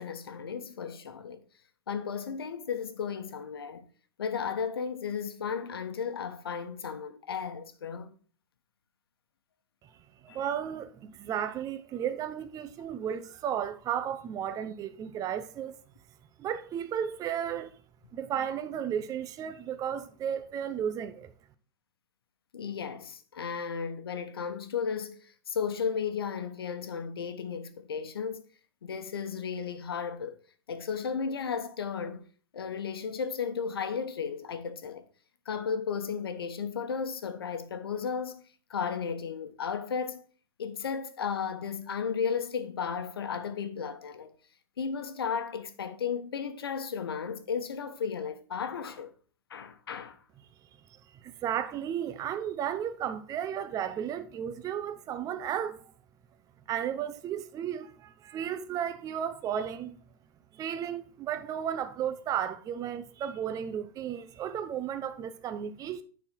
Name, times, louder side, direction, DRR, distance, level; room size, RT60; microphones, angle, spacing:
voice 1, 0.0-1.4 1.9-3.9 4.2-8.1 10.3-10.4 22.5-28.4 28.8-30.3 30.7-32.3 32.5-35.1 35.4-40.2 40.6-44.3 44.8-49.1 49.5-50.2, left 6 dB, 85° left, 1.0 m, -34 dB
voice 2, 10.2-15.8 16.4-17.7 18.1-21.3 50.9-55.8 56.7-60.0 60.5-66.0, right 9 dB, 30° right, 0.6 m, -34 dB
9.5 x 4.3 x 4.4 m
hypercardioid pair, 110°, 12 cm